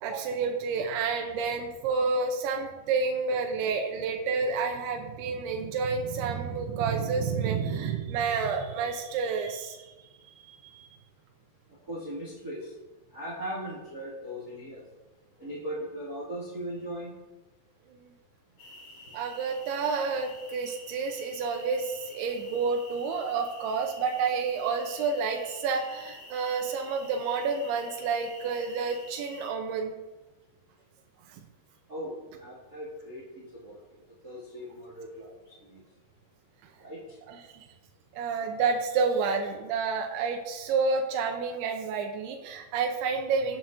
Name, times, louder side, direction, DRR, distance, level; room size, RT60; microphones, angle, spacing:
voice 1, 0.0-9.9 10.5-10.9 17.9-18.1 19.1-29.9 37.6-37.7 38.1-43.6, right 5 dB, 90° right, 3 dB, 2.7 m, -29 dB
voice 2, 11.9-12.7 13.1-14.8 15.4-17.1 31.9-33.8 34.2-35.8 36.8-37.0, equal, 35° right, -4 dB, 1.8 m, -38 dB
sound 1, 18.6-29.5, left 2 dB, 65° left, 3.7 m, -49 dB
16.0 x 7.5 x 2.6 m, 1.1 s
omnidirectional pair, 4.7 m